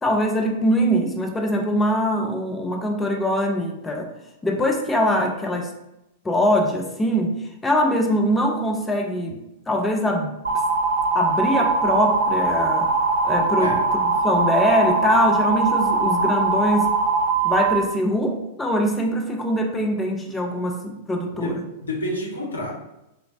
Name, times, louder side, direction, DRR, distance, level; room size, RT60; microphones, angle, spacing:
voice 1, 0.0-4.1 4.4-5.7 6.2-7.4 7.6-10.4 11.1-12.9 13.2-13.8 14.2-16.9 17.4-21.6, equal, 10° left, 2 dB, 0.4 m, -22 dB
sound 1, 10.4-17.8, right 4 dB, 75° right, 0.4 m, -21 dB
voice 2, 21.3-22.7, left 1 dB, 70° left, 0 dB, 0.6 m, -29 dB
3.0 x 2.0 x 2.5 m, 0.89 s
figure-of-eight pair, 95°, 0 cm